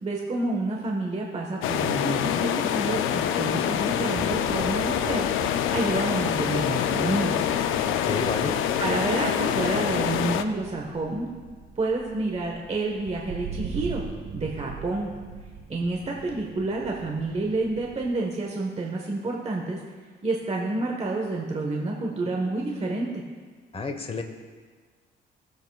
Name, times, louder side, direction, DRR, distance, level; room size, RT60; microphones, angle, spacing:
voice 1, 0.0-7.5 8.8-11.3 11.8-14.0 14.3-15.1 15.7-19.8 20.2-23.2, right 2 dB, 35° right, 0 dB, 1.3 m, -29 dB
sound 1, 1.6-10.4, left 9 dB, 90° left, 0.5 m, -25 dB
sound 2, 4.1-18.1, right 6 dB, 60° right, 1.1 m, -41 dB
voice 2, 7.8-8.6 23.7-24.2, left 3 dB, 30° left, 6 dB, 1.2 m, -30 dB
18.0 x 7.9 x 2.4 m, 1.5 s
cardioid pair, 90°, 20 cm